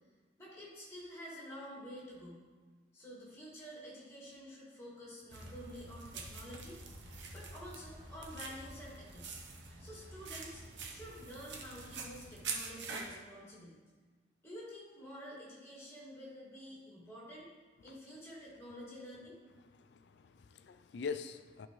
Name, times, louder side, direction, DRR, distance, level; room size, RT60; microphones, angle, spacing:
voice 1, 0.4-2.4 2.9-6.8 7.3-9.4 9.8-13.8 14.4-17.5 17.8-19.4, equal, 15° left, -6 dB, 2.1 m, -49 dB
sound 1, 5.3-13.1, right 4 dB, 80° right, 0.9 m, -46 dB
voice 2, 19.7-21.7, left 5 dB, 70° left, 10 dB, 0.4 m, -43 dB
11.0 x 4.8 x 3.1 m, 1.4 s
head